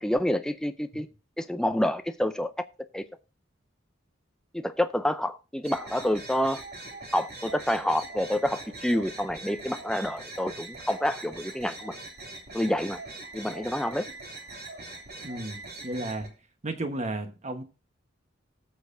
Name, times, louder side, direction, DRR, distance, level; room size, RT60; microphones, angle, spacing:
voice 1, 0.0-1.1 1.4-2.5 2.9-3.0 4.5-6.6 7.1-11.9 12.5-13.0 13.3-14.0, left 1 dB, 5° left, 0.4 m, -28 dB
sound 1, 5.6-16.3, right 2 dB, 55° right, 2.7 m, -42 dB
voice 2, 15.2-16.3 16.6-17.6, right 2 dB, 35° right, 1.3 m, -33 dB
18.5 x 6.6 x 2.6 m
head